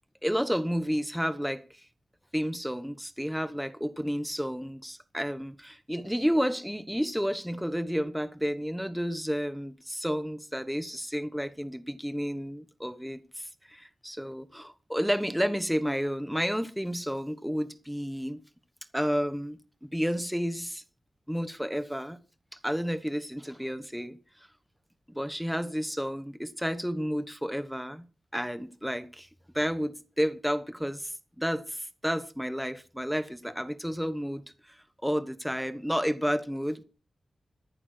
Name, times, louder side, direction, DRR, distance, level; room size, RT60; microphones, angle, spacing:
voice 1, 0.2-1.8 2.3-18.4 18.9-20.8 21.3-22.2 22.5-24.2 25.1-28.1 28.3-29.3 29.5-34.8 35.0-36.8, equal, ahead, 1.1 m, -31 dB
14.0 x 11.0 x 4.4 m
wide cardioid pair, 125°, 0 cm